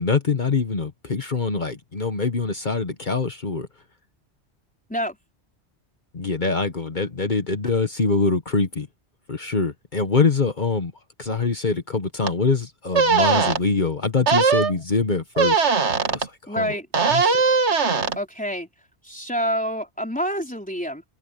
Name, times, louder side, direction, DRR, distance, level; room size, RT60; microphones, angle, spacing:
voice 1, 0.0-3.7 6.1-8.9 9.3-10.9 11.2-15.6 16.1-16.7 17.1-17.4, left 4 dB, 45° left, 1.3 m, -24 dB
sound 1, 12.2-12.3 12.9-13.6 14.3-14.7 15.4-16.3 16.9-18.2, right 5 dB, 80° right, 1.9 m, -19 dB
voice 2, 16.5-16.9 18.2-18.7 19.0-21.0, equal, 5° left, 3.7 m, -27 dB
omnidirectional pair, 1.1 m